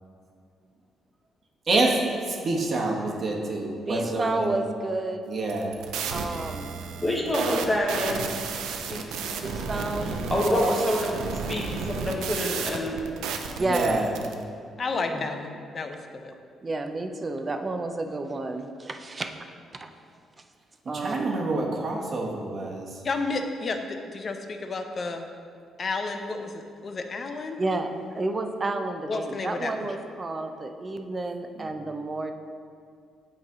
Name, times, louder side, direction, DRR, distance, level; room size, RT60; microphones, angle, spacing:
voice 1, 1.7-2.0 2.2-4.6 5.3-5.8 13.6-14.2 20.9-22.9, right 2 dB, 50° right, -1 dB, 1.1 m, -27 dB
voice 2, 3.9-5.4 6.1-6.7 7.5-7.6 9.4-10.8 13.5-14.1 16.6-19.3 19.8-19.9 20.9-21.3 27.6-32.3, right 2 dB, 30° right, 6 dB, 0.5 m, -30 dB
sound 1, 5.4-14.3, right 5 dB, 90° right, 0.5 m, -33 dB
voice 3, 7.0-8.3 8.6-9.5 10.3-11.1 11.5-13.0 15.1-15.3, left 1 dB, 15° left, -3 dB, 1.1 m, -27 dB
voice 4, 14.8-16.3 23.0-25.3 25.8-27.6 29.1-29.7, left 3 dB, 40° left, 5 dB, 0.6 m, -31 dB
8.3 x 3.2 x 5.0 m, 2.3 s
cardioid pair, 90°, 0 cm